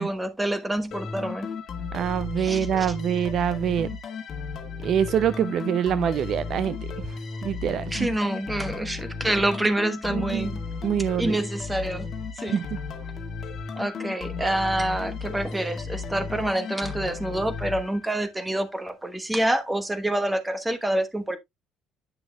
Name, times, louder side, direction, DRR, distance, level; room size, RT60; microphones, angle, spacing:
voice 1, 0.0-1.5 2.4-2.7 7.9-10.6 11.2-12.1 12.4-12.6 13.8-21.4, right 1 dB, 10° right, 1.1 m, -27 dB
sound 1, 0.9-18.4, left 5 dB, 40° left, 1.5 m, -35 dB
voice 2, 1.9-4.0 4.8-7.2 7.4-8.1 9.2-9.4 10.1-10.5 10.8-11.4 12.5-12.7, right 9 dB, 50° right, 0.4 m, -25 dB
9.8 x 6.1 x 2.2 m
cardioid pair, 125°, 0 cm